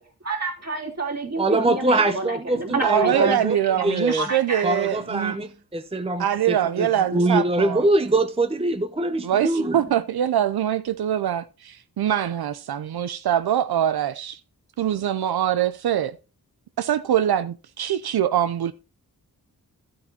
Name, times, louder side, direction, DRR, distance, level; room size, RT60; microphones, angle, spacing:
voice 1, 0.2-3.3 3.9-4.6, right 2 dB, 45° right, 3.1 m, -28 dB
voice 2, 1.4-3.6 3.8-4.3 4.6-9.8, right 2 dB, 15° right, 0.7 m, -23 dB
voice 3, 2.8-5.4 6.2-7.9 9.2-14.4 14.8-16.2 16.8-18.7, right 10 dB, 85° right, 0.5 m, -23 dB
12.5 x 8.6 x 2.8 m
wide cardioid pair, 60°, 37 cm